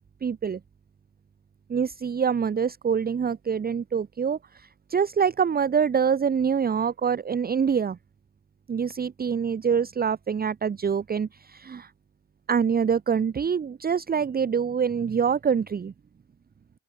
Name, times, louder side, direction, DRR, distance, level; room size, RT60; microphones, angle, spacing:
voice 1, 0.2-0.6 1.7-8.0 8.7-11.9 12.5-15.9, right 7 dB, 30° right, 0.9 m, -25 dB
open air
cardioid pair, 90°, 30 cm